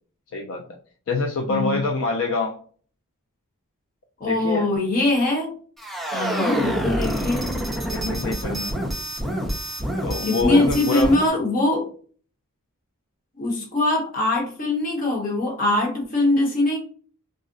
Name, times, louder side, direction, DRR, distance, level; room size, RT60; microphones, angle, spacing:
voice 1, 0.3-0.6 1.1-2.6 4.2-4.7 7.9-8.8 10.0-11.2, left 3 dB, 60° left, 2 dB, 0.4 m, -26 dB
voice 2, 1.5-1.8 4.2-5.5 6.1-7.5 10.2-11.9 13.3-16.8, left 2 dB, 40° left, -1 dB, 1.1 m, -22 dB
sound 1, 5.8-11.3, equal, ahead, 0.5 m, -27 dB
2.5 x 2.0 x 3.7 m, 0.43 s
head